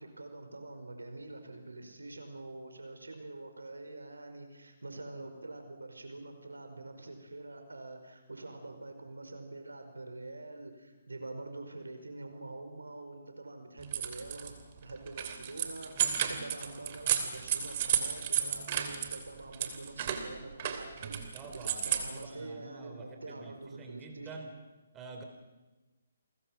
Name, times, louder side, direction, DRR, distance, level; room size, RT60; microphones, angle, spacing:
voice 1, 0.0-21.4 21.8-24.3, right 2 dB, 85° right, 6 dB, 5.2 m, -45 dB
sound 1, 13.8-14.5 14.9-19.2 19.5-22.2, right 9 dB, 40° right, 3.0 m, -33 dB
voice 2, 21.3-24.6 24.9-25.2, right 3 dB, 15° right, 3 dB, 3.9 m, -47 dB
30.0 x 22.5 x 6.0 m, 1.2 s
figure-of-eight pair, 140°, 0 cm